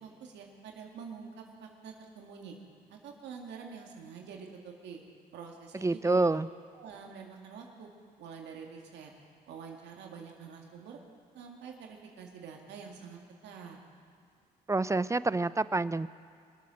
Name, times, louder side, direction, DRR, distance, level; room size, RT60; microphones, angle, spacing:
voice 1, 0.0-2.6 2.9-5.0 5.3-6.4 6.7-7.9 8.2-9.1 9.5-11.0 11.3-13.8, right 6 dB, 80° right, 1 dB, 2.0 m, -46 dB
voice 2, 5.7-6.5 14.7-16.1, right 3 dB, 15° right, 16 dB, 0.4 m, -27 dB
23.0 x 8.4 x 6.3 m, 2.3 s
supercardioid pair, 60°, 18 cm